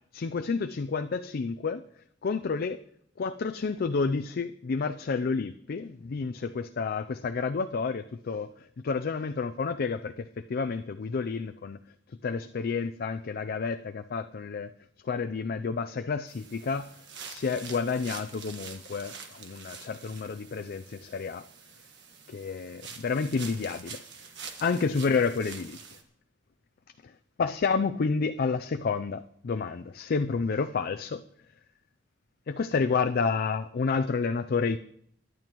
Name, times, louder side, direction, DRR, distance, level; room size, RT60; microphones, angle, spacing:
voice 1, 0.1-1.8 2.2-2.8 3.2-11.8 12.2-14.7 15.0-16.9 17.3-21.5 22.3-24.0 24.6-25.6 27.0-27.1 27.4-31.2 32.5-34.8, left 5 dB, 50° left, 8 dB, 0.4 m, -30 dB
sound 1, 16.3-26.0, right 6 dB, 60° right, 1.5 m, -46 dB
22.5 x 11.0 x 3.0 m, 0.70 s
head